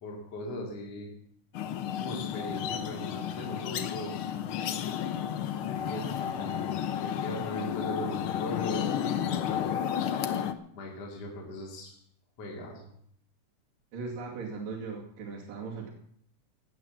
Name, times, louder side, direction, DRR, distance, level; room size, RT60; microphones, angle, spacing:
voice 1, 0.0-1.1 2.0-4.3 5.4-9.7 10.7-12.0 12.4-12.9, left 1 dB, 50° left, -1 dB, 3.6 m, -39 dB
sound 1, 1.5-10.5, left 9 dB, 85° left, 1.2 m, -32 dB
voice 2, 13.9-15.9, right 4 dB, 85° right, -5 dB, 4.3 m, -38 dB
18.0 x 9.0 x 7.4 m, 0.64 s
omnidirectional pair, 3.7 m